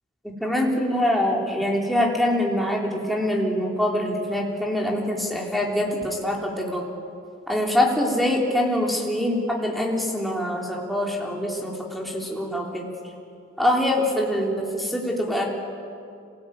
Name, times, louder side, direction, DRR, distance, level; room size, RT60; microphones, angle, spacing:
voice 1, 0.2-6.8 7.5-12.9 13.6-15.4, left 1 dB, ahead, -2 dB, 3.4 m, -24 dB
26.5 x 18.0 x 9.3 m, 2.5 s
head